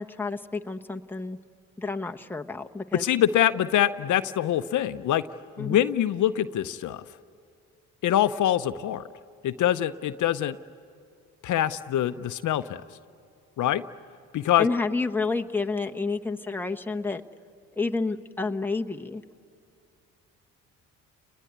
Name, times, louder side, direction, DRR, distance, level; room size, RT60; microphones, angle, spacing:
voice 1, 0.0-1.4 1.8-3.1 5.6-5.8 14.6-17.2 17.8-19.2, left 3 dB, 5° left, 4 dB, 1.1 m, -30 dB
voice 2, 2.9-5.2 5.6-7.0 8.0-9.0 9.4-10.6 11.4-12.8 13.6-13.8 14.3-14.7, left 11 dB, 60° left, 11 dB, 0.8 m, -24 dB
30.0 x 21.0 x 9.4 m, 2.4 s
supercardioid pair, 65°, 33 cm